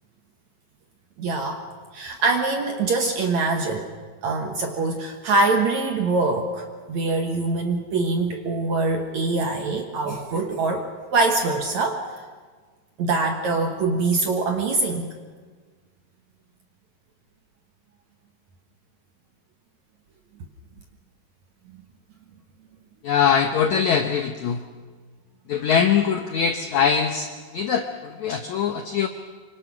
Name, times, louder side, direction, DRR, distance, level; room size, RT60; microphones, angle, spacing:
voice 1, 1.2-1.6 1.9-3.9 4.2-12.0 13.0-15.1, right 3 dB, 65° right, 4 dB, 1.9 m, -24 dB
voice 2, 23.0-24.6 25.5-27.3 27.5-27.8 28.2-29.1, left 7 dB, 85° left, 6 dB, 1.6 m, -22 dB
26.0 x 24.5 x 5.9 m, 1.5 s
omnidirectional pair, 4.8 m